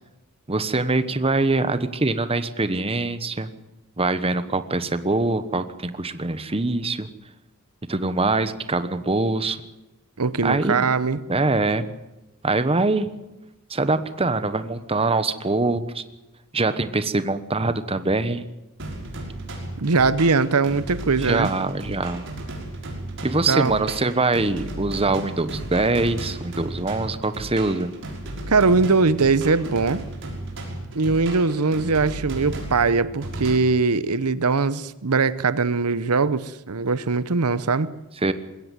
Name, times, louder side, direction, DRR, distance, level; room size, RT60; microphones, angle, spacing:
voice 1, 0.5-3.5 4.0-7.1 7.9-9.6 10.4-10.9 11.3-11.9 12.4-13.1 13.7-16.0 16.5-18.5 21.2-22.3 23.2-27.9 38.2-38.3, right 3 dB, 25° right, 1.2 m, -23 dB
voice 2, 10.2-11.2 19.8-21.5 23.4-23.7 28.5-30.0 30.9-37.9, right 4 dB, 90° right, 0.9 m, -21 dB
sound 1, 18.8-33.6, right 1 dB, 60° right, 5.8 m, -34 dB
21.0 x 16.5 x 9.3 m
head